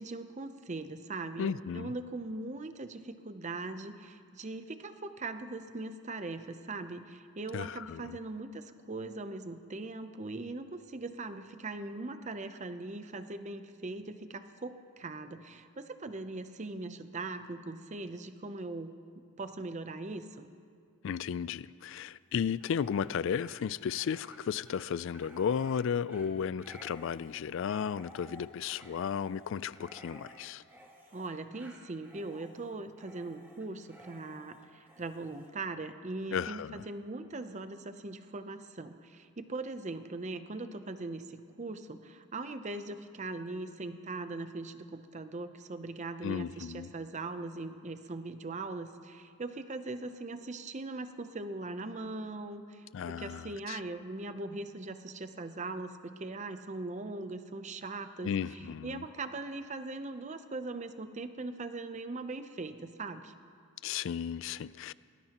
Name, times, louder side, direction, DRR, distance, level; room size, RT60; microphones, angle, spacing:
voice 1, 0.0-18.9 19.4-20.5 31.1-63.3, right 2 dB, 35° right, 9 dB, 0.6 m, -40 dB
voice 2, 1.4-1.9 7.5-8.2 21.0-30.6 36.3-36.8 46.2-46.9 52.9-53.8 58.2-59.0 63.8-64.9, left 7 dB, 60° left, 19 dB, 0.3 m, -34 dB
Dog, 22.5-35.5, right 1 dB, 10° right, 1.7 m, -55 dB
21.0 x 19.5 x 3.0 m, 2.3 s
head